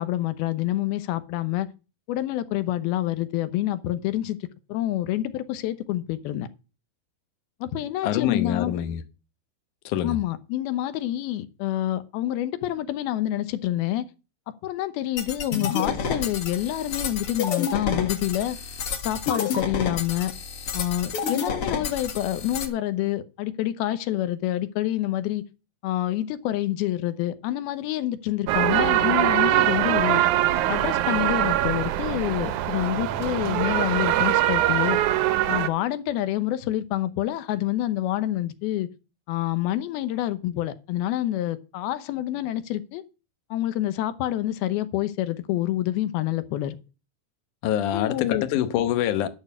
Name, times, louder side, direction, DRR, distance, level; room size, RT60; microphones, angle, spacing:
voice 1, 0.0-1.7 2.1-4.4 4.7-6.5 7.6-8.7 10.0-14.1 14.6-18.6 19.0-20.3 20.7-25.4 25.8-30.2 30.7-35.0 35.5-38.9 39.3-43.0 43.5-46.8 47.9-48.5, left 13 dB, 85° left, 2.8 m, -27 dB
voice 2, 8.0-9.0 9.9-10.2 47.6-49.3, left 11 dB, 70° left, 2.2 m, -25 dB
sound 1, 15.2-22.7, left 6 dB, 50° left, 1.9 m, -30 dB
sound 2, 28.5-35.7, right 13 dB, 80° right, 1.8 m, -23 dB
11.0 x 6.6 x 8.3 m
omnidirectional pair, 4.3 m